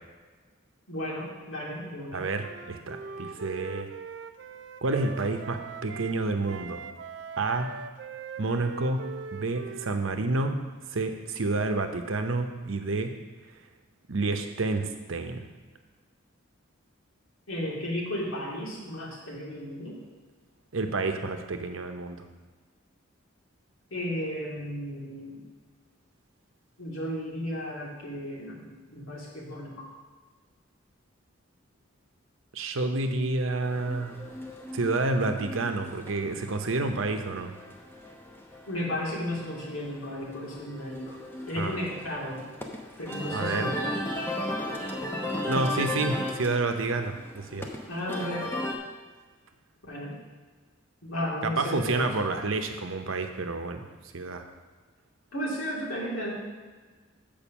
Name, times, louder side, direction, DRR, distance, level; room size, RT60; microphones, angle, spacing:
voice 1, 0.9-2.2 17.5-20.0 23.9-25.4 26.8-29.9 38.7-41.2 41.5-42.5 43.0-44.1 47.9-48.5 49.8-50.2 51.0-52.1 55.3-56.3, equal, 80° left, -4 dB, 2.5 m, -34 dB
voice 2, 2.1-3.9 4.8-6.9 7.4-7.8 8.4-10.6 10.9-13.2 14.1-15.5 20.7-22.2 32.5-34.2 34.7-37.5 41.6-41.8 43.3-43.7 45.5-47.7 51.4-53.9 54.1-54.4, right 3 dB, 75° right, 6 dB, 0.8 m, -29 dB
Wind instrument woodwind instrument, 2.4-6.2 6.4-10.6, right 5 dB, 55° right, 0.4 m, -42 dB
sound 1, 33.6-48.8, left 1 dB, 10° left, 0.8 m, -36 dB
7.0 x 5.2 x 7.2 m, 1.4 s
head